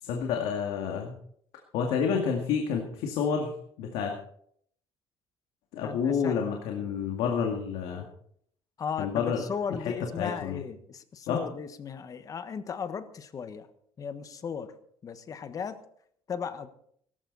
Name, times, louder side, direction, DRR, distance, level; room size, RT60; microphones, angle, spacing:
voice 1, 0.0-1.1 1.7-3.5 3.8-4.1 5.7-8.1 9.0-9.4 9.8-10.6 11.3-11.4, left 6 dB, 85° left, 2 dB, 2.2 m, -29 dB
voice 2, 5.8-6.4 8.8-13.7 14.0-14.7 15.0-15.8 16.3-16.7, left 6 dB, 35° left, 11 dB, 1.4 m, -36 dB
17.5 x 14.5 x 4.1 m, 0.65 s
cardioid pair, 125°, 10 cm